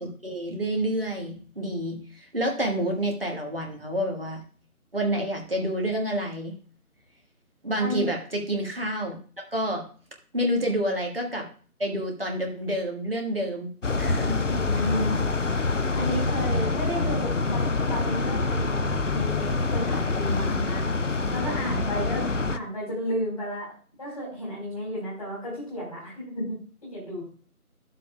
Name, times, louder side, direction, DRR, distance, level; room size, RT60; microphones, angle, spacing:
voice 1, 0.0-4.4 4.9-6.5 7.6-9.2 9.5-9.8 10.3-11.5 11.8-13.7 14.0-14.4, right 1 dB, 40° right, 1 dB, 1.7 m, -28 dB
sound 1, 13.8-22.6, left 3 dB, 55° left, 0.5 m, -26 dB
voice 2, 14.5-15.2 15.9-20.8 21.3-27.3, equal, 25° left, -6 dB, 4.2 m, -33 dB
11.0 x 7.4 x 2.3 m, 0.42 s
figure-of-eight pair, 170°, 45 cm